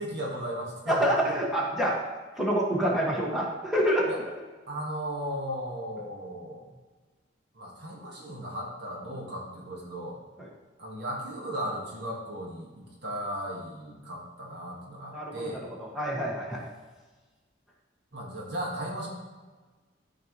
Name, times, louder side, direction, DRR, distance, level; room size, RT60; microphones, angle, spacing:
voice 1, 0.0-1.0 4.1-4.2 4.7-6.6 7.5-10.2 10.8-12.7 13.0-15.6 18.1-19.1, equal, 65° right, -3 dB, 1.7 m, -36 dB
voice 2, 0.9-2.0 2.4-4.1 10.4-10.5 15.1-16.6, equal, ahead, -5 dB, 1.8 m, -27 dB
13.0 x 4.6 x 3.1 m, 1.3 s
head